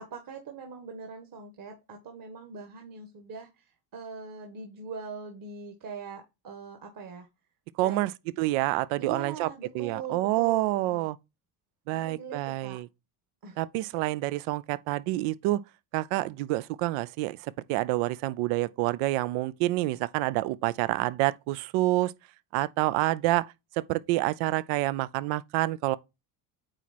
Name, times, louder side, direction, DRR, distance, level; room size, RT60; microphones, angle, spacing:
voice 1, 0.0-7.3 7.8-8.1 9.0-11.1 11.9-12.8 13.4-13.6, right 5 dB, 45° right, 1.5 m, -42 dB
voice 2, 7.8-8.1 8.4-9.5 9.7-11.2 11.9-12.9 13.6-15.6 15.9-22.1 22.5-23.5 23.8-26.0, right 18 dB, 80° right, 0.6 m, -28 dB
8.9 x 3.1 x 4.1 m
cardioid pair, 110°, 49 cm